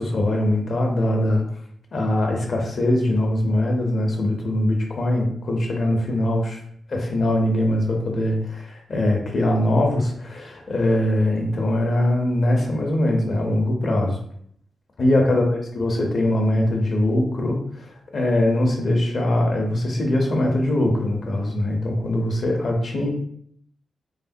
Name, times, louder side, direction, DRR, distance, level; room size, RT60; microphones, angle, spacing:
voice 1, 0.0-1.4 1.9-6.6 6.9-14.2 15.0-23.1, left 1 dB, 60° left, 2 dB, 0.7 m, -22 dB
3.2 x 2.1 x 2.6 m, 0.65 s
cardioid pair, 70°, 0 cm